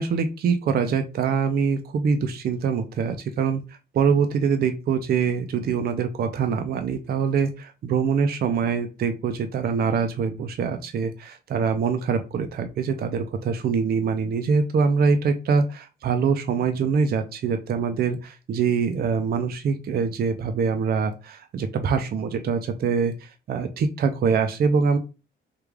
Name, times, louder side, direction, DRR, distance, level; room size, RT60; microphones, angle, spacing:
voice 1, 0.0-3.6 3.9-25.0, right 5 dB, 50° right, 7 dB, 0.5 m, -24 dB
3.3 x 2.3 x 3.4 m, 0.30 s
cardioid pair, 90°, 20 cm